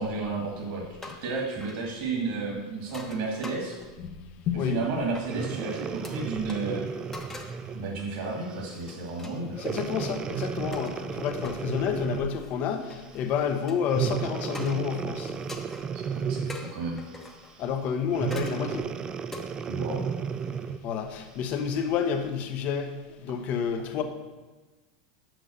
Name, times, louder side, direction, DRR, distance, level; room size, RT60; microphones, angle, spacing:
voice 1, 0.0-3.8 4.6-6.8 7.7-9.6 16.1-17.0 19.7-20.1, right 3 dB, 60° right, -1 dB, 2.0 m, -32 dB
sound 1, 0.9-1.3 1.6-1.8 2.8-4.1 5.1-5.3 6.0-6.1 6.5-6.6 7.1-7.6 8.0-8.2 8.6-9.9 10.7-11.0 11.4-11.6 12.3-13.8 14.5-14.9 15.3-15.9 16.5-17.5 18.3-18.7 19.3-19.5, left 3 dB, 10° left, 0.9 m, -43 dB
voice 2, 4.0-5.0 9.6-15.3 17.6-18.9 20.8-24.0, left 7 dB, 45° left, 7 dB, 0.9 m, -29 dB
Breathing, 5.3-7.9 8.5-8.7 9.6-12.5 13.9-16.7 18.1-20.9 21.5-21.6, right 6 dB, 20° right, 0.3 m, -33 dB
6.1 x 5.5 x 6.4 m, 1.2 s
supercardioid pair, 130°, 4 cm